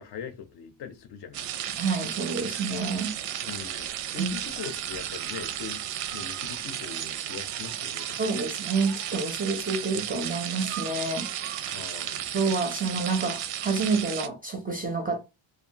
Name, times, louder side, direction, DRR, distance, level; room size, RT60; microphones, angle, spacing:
voice 1, 0.0-1.8 3.4-5.8 6.1-8.2 11.7-12.3, left 7 dB, 55° left, 0.6 m, -41 dB
sound 1, 1.3-14.3, right 11 dB, 85° right, 0.6 m, -34 dB
voice 2, 1.8-3.1 4.2-4.3 8.2-11.3 11.6-11.7 12.3-15.2, right 4 dB, 20° right, 0.4 m, -28 dB
2.6 x 2.2 x 2.7 m
cardioid pair, 120°, 50 cm